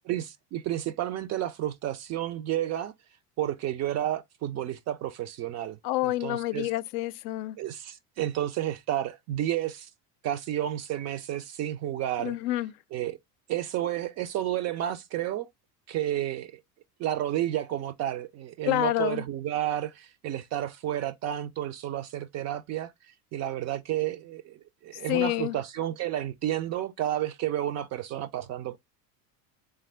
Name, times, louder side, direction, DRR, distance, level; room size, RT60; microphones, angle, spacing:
voice 1, 0.1-2.9 3.4-5.8 6.0-6.7 7.6-9.9 10.2-12.4 12.9-13.2 13.5-15.5 15.9-16.5 17.0-22.9 23.3-24.6 24.8-28.8, right 12 dB, 35° right, 0.4 m, -31 dB
voice 2, 5.8-7.6 12.2-12.7 18.6-19.2 25.1-25.6, left 16 dB, 65° left, 0.5 m, -28 dB
3.5 x 3.4 x 3.2 m
hypercardioid pair, 80°, 49 cm